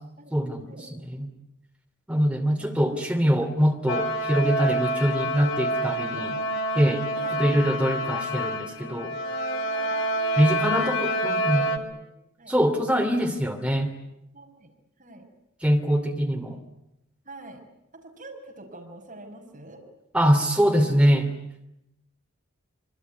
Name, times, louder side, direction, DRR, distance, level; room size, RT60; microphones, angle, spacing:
voice 1, 0.3-1.3 2.1-6.4 6.7-7.1 7.3-9.2 10.4-11.7 12.5-13.9 15.6-16.6 20.1-21.3, equal, 5° right, 3 dB, 2.8 m, -23 dB
voice 2, 2.6-3.5 5.8-6.3 7.1-7.7 9.6-10.0 10.3-12.5 14.3-14.7 15.0-15.2 17.2-17.6 17.9-19.8 20.6-20.7, right 2 dB, 35° right, 1 dB, 5.7 m, -46 dB
sound 1, 3.9-11.8, equal, 60° left, 2.7 m, -27 dB
26.0 x 24.0 x 9.5 m, 0.83 s
head